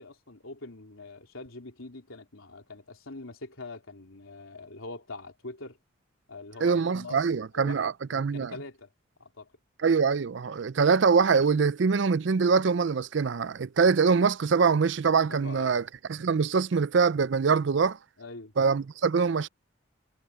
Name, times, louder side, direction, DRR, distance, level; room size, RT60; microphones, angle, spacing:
voice 1, 0.0-5.8 6.3-7.2 7.5-8.9 9.2-9.5 15.3-15.9 18.2-18.5, left 3 dB, 80° left, 3.5 m, -43 dB
voice 2, 6.6-8.5 9.8-15.8 16.1-18.0 18.6-19.5, right 5 dB, 60° right, 0.4 m, -24 dB
head